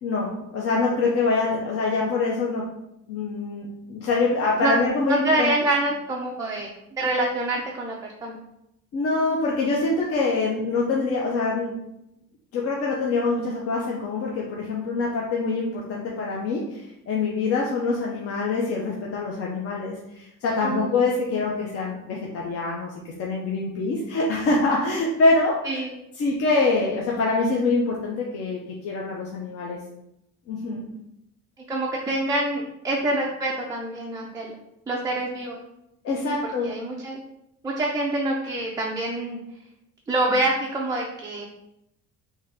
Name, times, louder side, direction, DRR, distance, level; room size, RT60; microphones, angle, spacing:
voice 1, 0.0-2.7 3.1-5.5 8.9-11.8 12.5-22.9 23.2-25.8 26.2-29.8 30.5-30.8 36.0-36.7, left 3 dB, 50° left, -2 dB, 0.7 m, -25 dB
voice 2, 4.2-4.7 5.1-8.4 20.6-20.9 21.3-21.5 25.6-25.9 31.6-34.5 34.9-35.6 36.3-36.4 36.6-37.2 37.6-39.4 40.1-41.5, right 2 dB, 10° right, -2 dB, 0.4 m, -26 dB
3.8 x 2.8 x 4.5 m, 0.83 s
cardioid pair, 160°, 30 cm